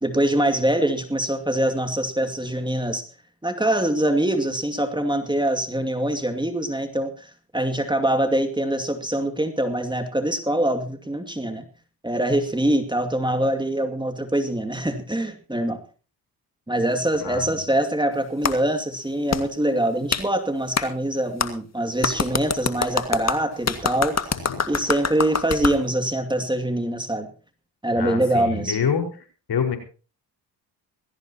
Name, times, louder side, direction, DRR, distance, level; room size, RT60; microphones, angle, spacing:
voice 1, 0.0-3.0 3.4-11.6 12.0-15.8 16.7-24.3 24.7-27.3 27.8-28.8, right 1 dB, 10° right, 6 dB, 2.4 m, -24 dB
voice 2, 17.2-17.6 24.4-24.6 28.0-29.0 29.5-29.8, left 7 dB, 60° left, 4 dB, 5.0 m, -26 dB
Clapping, 18.4-18.6 19.3-19.4 20.1-20.2 20.8-20.9 21.4-21.5 22.0-25.8, left 5 dB, 35° left, 2.0 m, -24 dB
20.5 x 15.5 x 2.9 m, 0.36 s
supercardioid pair, 60°, 44 cm